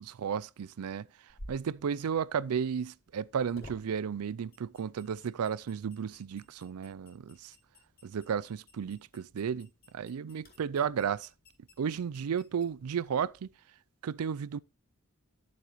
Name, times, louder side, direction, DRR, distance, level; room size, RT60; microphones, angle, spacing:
voice 1, 0.0-1.1 1.5-7.5 8.0-11.3 11.8-13.5 14.0-14.6, right 7 dB, 90° right, 0.4 m, -33 dB
sound 1, 1.3-13.5, left 1 dB, 45° left, 3.5 m, -56 dB
11.5 x 7.5 x 3.0 m
head